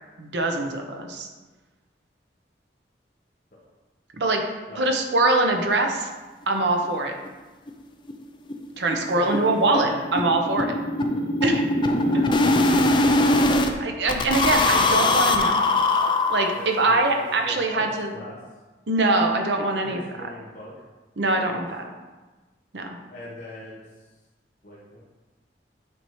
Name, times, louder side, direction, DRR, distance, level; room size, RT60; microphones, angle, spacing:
voice 1, 0.2-1.3 4.2-4.4 4.7-6.1 6.5-7.1 8.8-10.7 11.4-11.6 13.8-15.8 16.3-18.1 18.9-20.0 21.2-21.8 22.7-22.9, right 2 dB, 75° right, 3 dB, 0.9 m, -23 dB
sound 1, 6.8-6.9 7.3-7.4 7.7-7.8 8.1-8.2 8.5-13.7 14.1-16.9, left 2 dB, 25° left, 0.4 m, -22 dB
voice 2, 9.1-10.1 10.5-10.7 11.8-13.0 16.5-17.9 18.1-18.4 19.8-20.7 21.5-21.6 23.1-24.1 24.6-25.0, left 1 dB, 45° left, -9 dB, 1.2 m, -40 dB
8.7 x 4.5 x 3.1 m, 1.2 s
head